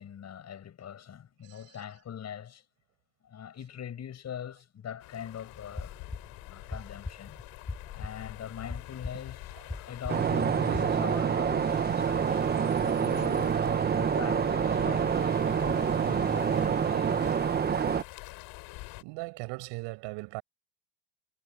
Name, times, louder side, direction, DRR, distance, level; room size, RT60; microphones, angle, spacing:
voice 1, 0.0-2.6 3.2-6.0 6.4-7.4 7.9-12.5 12.8-13.6 14.0-15.1 15.6-17.2, left 9 dB, 35° left, 7.3 m, -42 dB
voice 2, 1.4-1.9 9.5-9.6 19.0-20.4, right 26 dB, 70° right, 7.8 m, -39 dB
sound 1, 5.0-19.0, left 22 dB, 65° left, 4.1 m, -45 dB
sound 2, 5.5-10.8, left 3 dB, 10° left, 6.2 m, -42 dB
sound 3, 10.1-18.0, right 7 dB, 20° right, 1.0 m, -27 dB
supercardioid pair, 120°, 44 cm